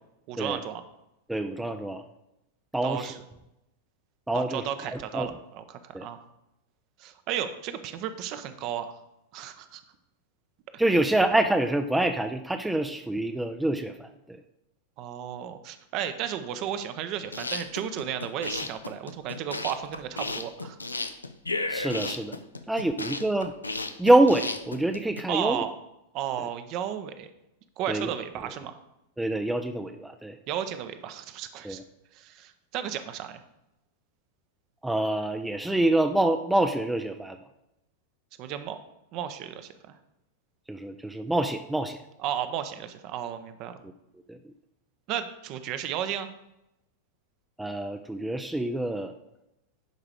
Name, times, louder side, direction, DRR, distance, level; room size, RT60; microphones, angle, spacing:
voice 1, 0.3-0.8 2.8-3.2 4.3-6.2 7.0-8.9 9.3-9.8 15.0-20.8 25.3-25.7 26.1-27.3 27.8-28.8 30.5-31.8 32.1-33.4 38.4-38.8 39.1-39.9 42.2-43.7 45.1-46.3, right 10 dB, 40° right, 10 dB, 0.8 m, -34 dB
voice 2, 1.3-2.0 2.7-3.1 4.3-4.6 4.9-5.3 5.9-6.1 10.8-14.4 21.7-22.4 22.7-23.5 24.0-25.6 27.9-28.1 29.2-30.4 31.6-31.8 34.8-37.4 40.7-42.0 44.3-44.4 47.6-49.1, right 1 dB, 5° right, 7 dB, 0.5 m, -26 dB
sound 1, 17.2-25.2, left 3 dB, 80° left, 0.6 m, -34 dB
11.0 x 4.9 x 5.0 m, 0.88 s
figure-of-eight pair, 90°, 0 cm